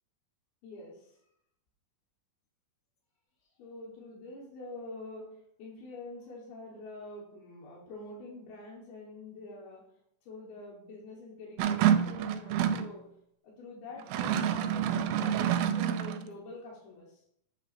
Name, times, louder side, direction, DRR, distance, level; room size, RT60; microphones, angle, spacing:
voice 1, 0.6-1.2 3.6-9.9 10.3-13.0 13.4-17.2, left 2 dB, 85° left, -5 dB, 3.4 m, -46 dB
sound 1, 11.6-12.9 14.0-16.2, right 9 dB, 90° right, 2.5 m, -28 dB
8.4 x 3.6 x 6.0 m, 0.74 s
omnidirectional pair, 4.3 m